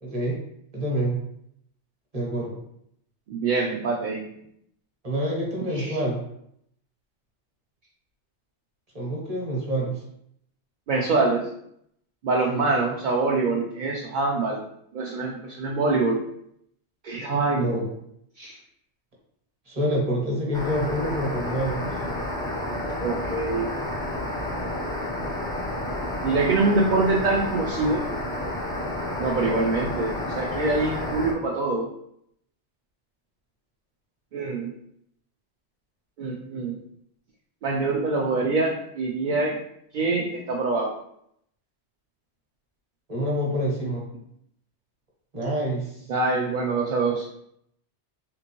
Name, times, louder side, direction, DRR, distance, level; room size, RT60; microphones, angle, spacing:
voice 1, 0.0-0.4 0.7-1.2 2.1-2.6 5.0-6.2 8.9-10.0 12.5-12.7 17.5-17.9 19.7-21.8 43.1-44.1 45.3-46.0, right 1 dB, 35° right, -3 dB, 1.0 m, -27 dB
voice 2, 3.3-4.3 5.7-5.9 10.9-11.5 12.2-14.6 14.9-16.2 17.0-17.7 18.4-18.6 23.0-23.7 26.2-28.1 29.2-31.9 34.3-34.7 36.2-36.8 37.6-39.6 39.9-40.9 46.1-47.3, right 3 dB, 60° right, -1 dB, 0.5 m, -24 dB
sound 1, 20.5-31.3, left 1 dB, 5° left, 0.5 m, -30 dB
3.6 x 2.5 x 2.9 m, 0.73 s
omnidirectional pair, 1.2 m